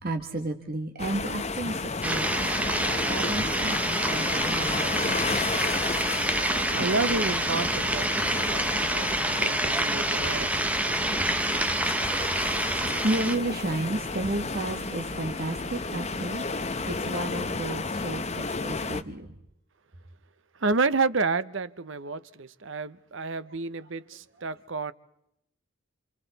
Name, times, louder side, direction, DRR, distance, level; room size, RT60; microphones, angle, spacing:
voice 1, 0.0-5.2 11.0-11.4 12.1-16.4 16.8-19.4 23.8-24.4, right 1 dB, 45° right, 1.5 m, -33 dB
sound 1, 1.0-19.0, left 3 dB, 30° left, 0.9 m, -32 dB
sound 2, 2.0-13.4, right 1 dB, 5° right, 0.8 m, -27 dB
voice 2, 6.7-10.5 20.6-24.9, right 3 dB, 60° right, 0.8 m, -30 dB
sound 3, 11.3-17.6, right 2 dB, 25° right, 6.0 m, -50 dB
28.5 x 28.0 x 4.1 m
head